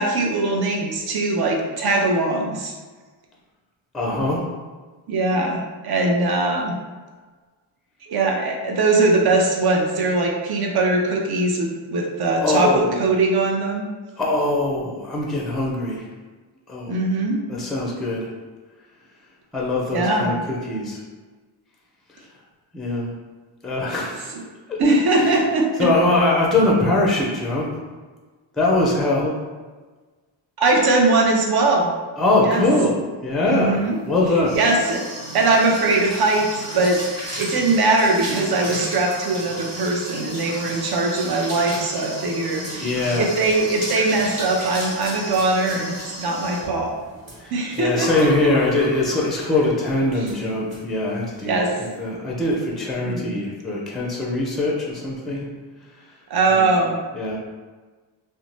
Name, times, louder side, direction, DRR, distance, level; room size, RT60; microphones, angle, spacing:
voice 1, 0.0-2.7 5.1-6.8 8.0-13.8 16.9-17.4 19.9-20.4 24.3-24.4 24.8-25.9 30.6-31.9 32.4-32.6 33.5-34.0 34.5-35.0 35.3-36.4 36.7-37.0 37.4-47.0 47.5-48.5 51.4-51.8 53.0-53.4 56.3-57.0, right 2 dB, 55° right, 0 dB, 0.6 m, -21 dB
voice 2, 3.9-4.4 12.4-13.1 14.2-16.1 16.7-17.0 17.5-18.3 19.5-20.4 20.7-21.0 22.7-23.1 23.6-24.3 24.7-24.8 25.3-25.4 25.8-27.7 28.5-29.3 32.2-32.9 33.2-34.6 42.8-43.3 47.4-55.5 56.5-56.7 57.1-57.4, left 2 dB, ahead, -3 dB, 0.4 m, -22 dB
sound 1, 34.0-49.7 50.1-50.4 50.7-50.8 51.1-51.4, right 1 dB, 35° right, 1.0 m, -34 dB
2.6 x 2.1 x 3.1 m, 1.4 s
cardioid pair, 105°, 46 cm